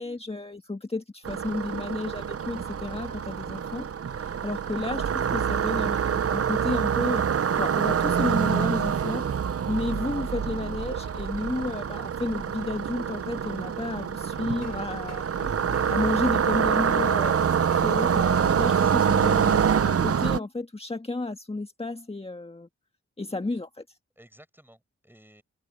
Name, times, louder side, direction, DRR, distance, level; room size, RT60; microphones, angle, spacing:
voice 1, 0.0-7.2 7.6-9.2 9.7-15.2 15.9-22.7 23.2-24.0, left 2 dB, 20° left, 1.6 m, -32 dB
sound 1, 1.2-20.4, right 7 dB, 55° right, 0.8 m, -26 dB
sound 2, 14.3-19.8, left 5 dB, 60° left, 1.9 m, -46 dB
voice 2, 24.2-25.4, right 1 dB, 5° right, 5.3 m, -53 dB
open air
cardioid pair, 45°, 29 cm